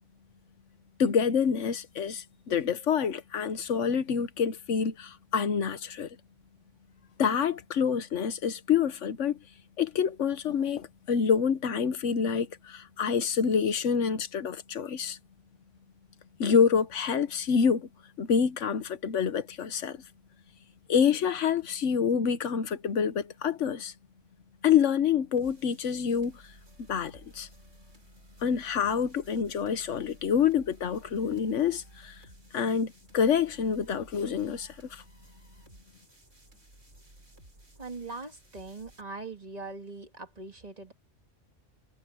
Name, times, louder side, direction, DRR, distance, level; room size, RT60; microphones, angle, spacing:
voice 1, 1.0-6.2 7.2-9.4 9.8-15.2 16.4-17.9 18.2-20.0 20.9-23.9 24.6-26.4 26.9-27.5 28.4-32.2 32.5-35.0, left 7 dB, 85° left, 1.3 m, -27 dB
sound 1, 25.4-39.0, right 1 dB, 85° right, 8.0 m, -56 dB
voice 2, 37.8-40.9, right 3 dB, 35° right, 1.9 m, -41 dB
omnidirectional pair, 1.2 m